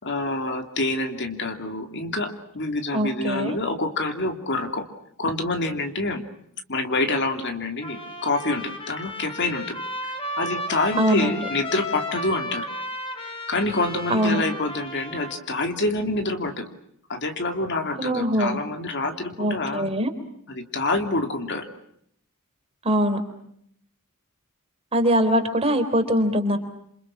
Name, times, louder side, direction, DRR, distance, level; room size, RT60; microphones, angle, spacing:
voice 1, 0.0-4.9 5.2-6.2 6.7-9.8 10.4-12.7 13.5-16.7 17.1-19.9 20.5-21.7, left 2 dB, 50° left, 6 dB, 2.9 m, -27 dB
voice 2, 2.9-3.6 11.0-11.3 14.1-14.4 18.0-18.6 19.4-20.1 22.8-23.2 24.9-26.6, equal, 25° right, 6 dB, 3.9 m, -22 dB
Trumpet, 7.8-15.4, left 1 dB, 25° left, 4.7 m, -34 dB
28.0 x 28.0 x 6.1 m, 0.71 s
head